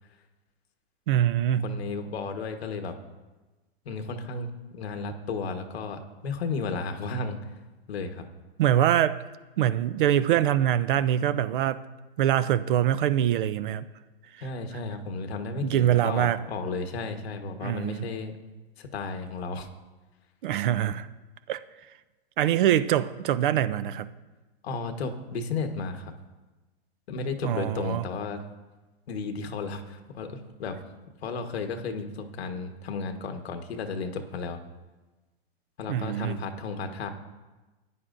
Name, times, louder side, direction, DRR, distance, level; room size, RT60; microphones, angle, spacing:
voice 1, 1.1-1.7 8.6-9.2 9.6-11.8 12.2-13.9 15.6-16.4 17.6-18.0 20.4-21.1 21.5-21.6 22.4-24.1 27.4-28.0 35.9-36.4, right 11 dB, 55° right, 0.5 m, -24 dB
voice 2, 1.6-2.9 3.8-7.4 7.9-8.3 14.4-18.3 18.8-19.7 24.6-26.1 27.1-28.4 29.1-30.8 31.2-34.6 35.8-37.1, left 4 dB, 80° left, 1.3 m, -33 dB
15.0 x 10.0 x 2.6 m
hypercardioid pair, 150°, 31 cm